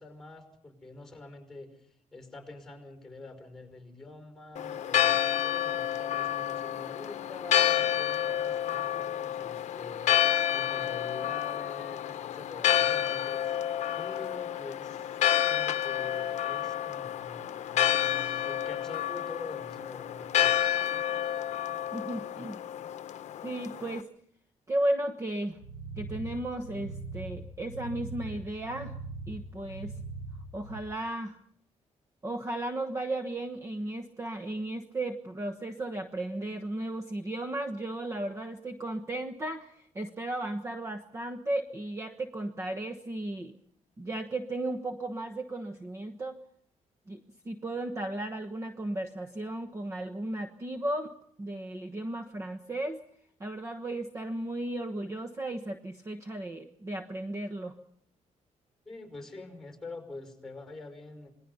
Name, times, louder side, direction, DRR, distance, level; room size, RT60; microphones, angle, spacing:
voice 1, 0.0-1.7 2.1-10.2 10.5-13.5 14.0-20.7 58.9-61.3, left 3 dB, 5° left, 6 dB, 5.5 m, -46 dB
Church bell, 4.6-24.0, left 11 dB, 65° left, 0.8 m, -29 dB
voice 2, 21.9-22.6 23.4-24.1 24.7-25.6 26.0-29.0 29.3-29.9 30.5-31.4 32.2-43.5 44.0-46.4 47.1-51.1 51.4-53.0 53.4-57.7, right 1 dB, 25° right, 7 dB, 1.2 m, -35 dB
sound 1, 25.5-30.8, right 3 dB, 75° right, 4.3 m, -41 dB
27.5 x 21.0 x 5.7 m, 0.66 s
cardioid pair, 160°, 12 cm